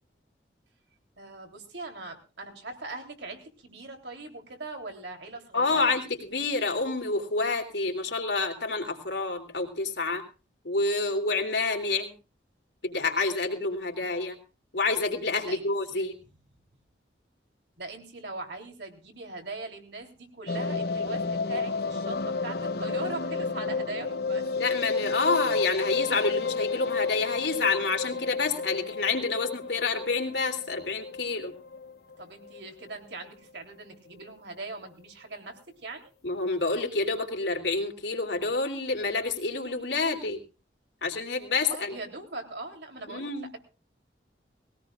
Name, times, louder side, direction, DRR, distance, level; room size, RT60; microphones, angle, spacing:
voice 1, 1.2-6.0 13.9-14.0 15.4-16.1 17.8-24.5 32.2-36.1 41.7-43.6, right 2 dB, 75° right, 4 dB, 3.4 m, -41 dB
voice 2, 5.5-10.2 10.6-12.1 12.8-14.4 14.7-16.2 24.6-31.5 36.2-40.4 41.0-41.9 43.1-43.5, left 3 dB, 80° left, 4 dB, 3.1 m, -28 dB
sound 1, 20.5-32.6 32.9-33.0 33.2-33.3 33.6-33.7, left 4 dB, 60° left, 0.7 m, -31 dB
21.0 x 17.0 x 2.5 m, 0.33 s
head